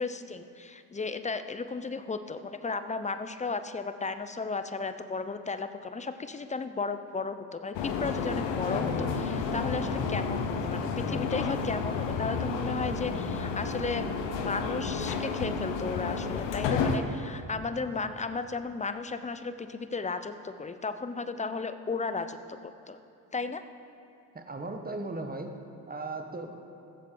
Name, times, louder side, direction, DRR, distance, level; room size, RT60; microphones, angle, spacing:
voice 1, 0.0-14.1 14.4-23.0 23.3-23.6, left 4 dB, 15° left, 10 dB, 0.6 m, -34 dB
sound 1, 7.7-17.0, left 5 dB, 85° left, 0.9 m, -31 dB
voice 2, 24.3-25.5 25.9-26.6, right 2 dB, 20° right, 5 dB, 1.3 m, -37 dB
16.0 x 7.3 x 3.8 m, 2.9 s
supercardioid pair, 55°, 42 cm